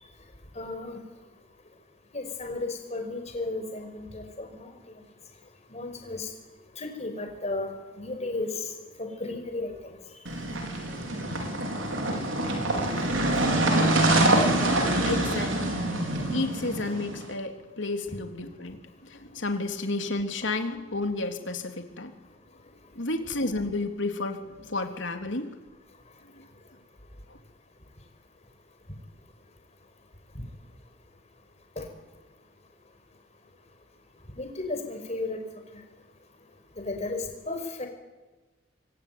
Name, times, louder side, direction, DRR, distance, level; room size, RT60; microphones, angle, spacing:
voice 1, 0.5-1.0 2.1-5.0 5.7-6.3 6.8-8.7 9.0-10.0 15.2-15.3 31.8-31.9 34.4-35.4 36.8-37.9, left 2 dB, 35° left, 5 dB, 5.5 m, -34 dB
sound 1, 10.2-17.2, right 1 dB, 80° right, 4.5 m, -25 dB
voice 2, 15.0-15.8 16.3-22.1 23.0-25.5 26.4-26.5 27.3-27.4, left 2 dB, 70° left, 5 dB, 3.3 m, -31 dB
26.5 x 23.5 x 9.5 m, 1.2 s
head